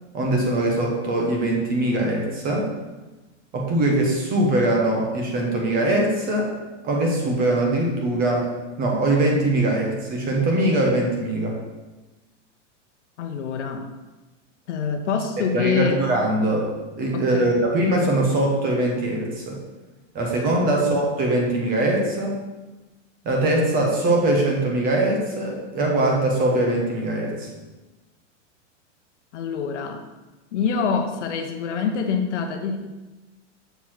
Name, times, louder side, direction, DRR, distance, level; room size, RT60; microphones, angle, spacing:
voice 1, 0.1-2.7 3.5-6.5 6.8-8.5 8.8-11.6 15.5-16.7 17.0-19.6 20.1-22.4 23.2-27.5, right 1 dB, 25° right, 0 dB, 1.2 m, -22 dB
voice 2, 13.2-13.9 14.7-16.0 17.1-17.5 20.7-20.9 29.3-30.0 30.5-32.8, left 6 dB, 65° left, 5 dB, 0.9 m, -25 dB
6.8 x 4.1 x 4.4 m, 1.1 s
supercardioid pair, 155°, 38 cm